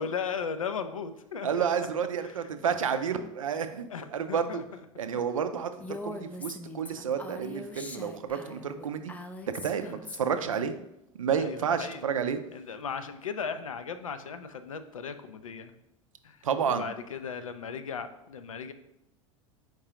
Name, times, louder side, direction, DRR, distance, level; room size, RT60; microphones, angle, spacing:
voice 1, 0.0-1.7 2.2-2.5 3.9-4.8 9.8-10.0 11.4-12.0 12.5-15.7 16.2-16.4 16.7-18.7, left 6 dB, 80° left, 10 dB, 0.4 m, -37 dB
voice 2, 1.4-4.6 5.0-9.1 9.6-10.8 11.2-12.4 16.4-16.8, right 7 dB, 80° right, 9 dB, 0.4 m, -30 dB
Female speech woman speaking, 5.8-10.5, left 2 dB, 10° left, 0.3 m, -42 dB
4.5 x 3.8 x 2.8 m, 0.85 s
figure-of-eight pair, 80°, 17 cm